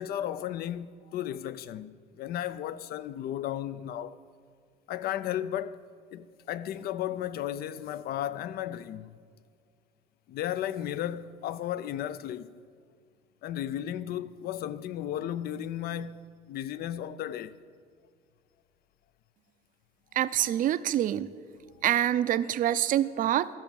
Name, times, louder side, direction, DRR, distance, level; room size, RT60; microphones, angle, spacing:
voice 1, 0.0-4.2 4.9-5.9 6.1-9.2 10.3-12.6 13.4-17.6, left 11 dB, 65° left, 0.5 m, -34 dB
voice 2, 20.1-21.3 21.8-23.5, right 11 dB, 55° right, 0.5 m, -26 dB
12.5 x 6.0 x 7.0 m
cardioid pair, 110°, 17 cm